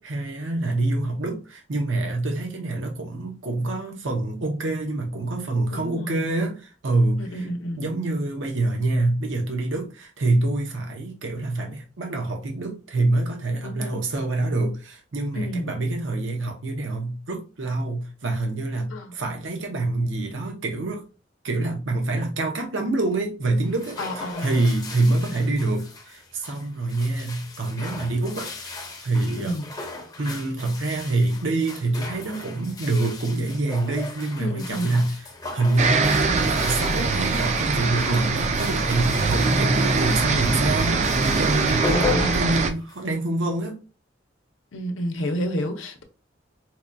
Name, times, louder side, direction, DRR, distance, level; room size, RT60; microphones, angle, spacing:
voice 1, 0.0-7.5 7.8-21.0 21.4-29.6 30.2-35.3 35.5-41.1 41.4-43.8, right 2 dB, 75° right, 0.7 m, -26 dB
voice 2, 5.7-6.2 7.2-7.9 13.6-14.0 15.3-15.7 18.9-19.1 24.0-24.6 29.3-29.7 34.4-34.9 41.9-42.5 44.7-46.0, equal, 85° left, 0.6 m, -30 dB
sound 1, 23.6-43.2, left 3 dB, 20° left, 0.6 m, -37 dB
sound 2, 35.8-42.7, right 4 dB, 35° right, 0.4 m, -22 dB
4.3 x 2.2 x 2.5 m
head